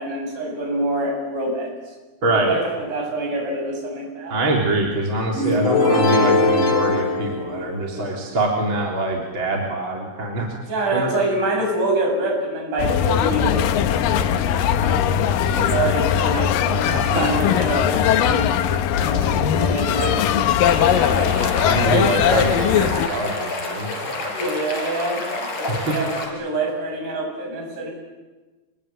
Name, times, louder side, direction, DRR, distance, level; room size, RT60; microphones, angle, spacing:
voice 1, 0.0-1.7 2.2-4.3 10.7-14.4 14.7-15.0 15.5-21.3 24.3-27.9, right 1 dB, 50° right, 1 dB, 9.0 m, -26 dB
voice 2, 2.2-2.6 4.3-10.6 10.9-11.1 15.5-15.9 16.7-17.4 21.7-24.2 25.7-25.9, right 2 dB, 30° right, -1 dB, 3.8 m, -24 dB
sound 1, 5.4-8.2, left 3 dB, 85° left, 6.5 m, -20 dB
sound 2, 12.8-23.1, left 9 dB, 70° left, 2.5 m, -20 dB
sound 3, 20.6-26.3, left 2 dB, 40° left, 5.8 m, -29 dB
27.5 x 23.0 x 9.1 m, 1.2 s
omnidirectional pair, 4.7 m